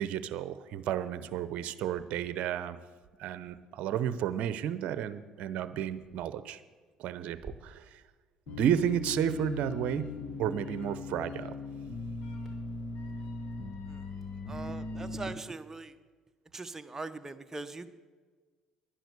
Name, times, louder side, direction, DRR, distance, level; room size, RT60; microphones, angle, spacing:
voice 1, 0.0-2.8 3.2-6.6 7.0-8.0 8.5-10.1 10.4-11.5, right 9 dB, 65° right, 13 dB, 0.8 m, -32 dB
sound 1, 7.3-7.5 8.6-9.0 11.7-14.5, right 3 dB, 5° right, 4.5 m, -55 dB
sound 2, 8.5-15.3, left 3 dB, 60° left, 2.0 m, -39 dB
voice 2, 14.5-16.0 16.5-17.9, right 3 dB, 20° right, 9 dB, 1.1 m, -41 dB
11.5 x 10.0 x 8.3 m, 1.4 s
hypercardioid pair, 65°, 2 cm